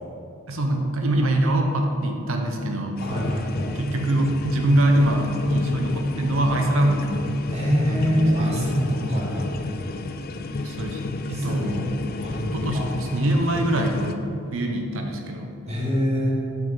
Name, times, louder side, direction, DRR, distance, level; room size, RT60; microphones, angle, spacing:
voice 1, 0.5-3.0 3.7-7.1 7.8-8.6 10.6-11.0 11.3-11.9 12.4-14.2 14.5-15.5, right 1 dB, 65° right, 3 dB, 1.0 m, -23 dB
sound 1, 3.0-14.1, left 2 dB, 40° left, 0.4 m, -31 dB
voice 2, 3.0-3.7 7.5-9.5 11.3-11.8 12.2-12.4 12.7-12.9 15.7-16.3, equal, 30° right, -5 dB, 1.9 m, -24 dB
7.5 x 6.1 x 5.5 m, 2.5 s
head